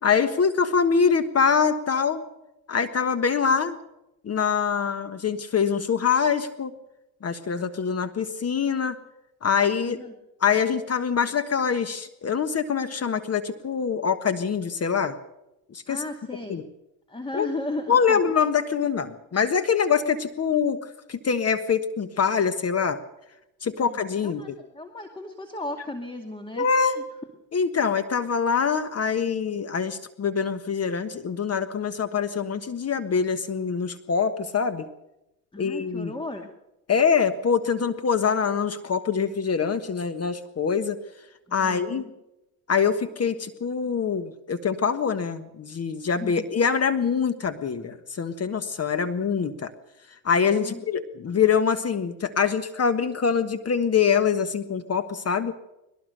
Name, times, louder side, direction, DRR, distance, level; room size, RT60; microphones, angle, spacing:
voice 1, 0.0-2.3 2.7-3.8 4.2-6.7 7.2-9.0 9.4-10.0 10.4-15.2 15.7-16.0 16.5-16.6 17.3-17.5 17.9-23.0 23.6-24.5 26.6-27.0 27.5-34.9 35.6-36.1 36.9-41.0 41.5-42.0 42.7-49.7 50.2-55.5, left 6 dB, 30° left, 11 dB, 1.5 m, -24 dB
voice 2, 9.8-10.1 15.9-16.6 17.1-18.2 23.8-24.0 24.2-27.0 35.5-36.5 41.5-42.1 46.2-46.5 50.6-50.8, left 2 dB, 10° left, 6 dB, 2.3 m, -35 dB
21.0 x 18.5 x 6.7 m, 0.90 s
hypercardioid pair, 80°, 47 cm